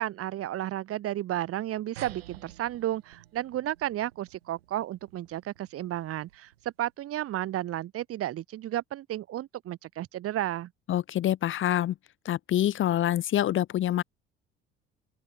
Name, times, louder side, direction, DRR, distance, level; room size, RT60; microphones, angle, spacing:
voice 1, 0.0-6.5 6.8-10.7, right 13 dB, 50° right, 0.9 m, -32 dB
sound 1, 2.0-6.8, right 13 dB, 85° right, 6.7 m, -51 dB
voice 2, 10.9-11.9 12.2-14.0, left 12 dB, 40° left, 0.6 m, -26 dB
open air
hypercardioid pair, 55°, 30 cm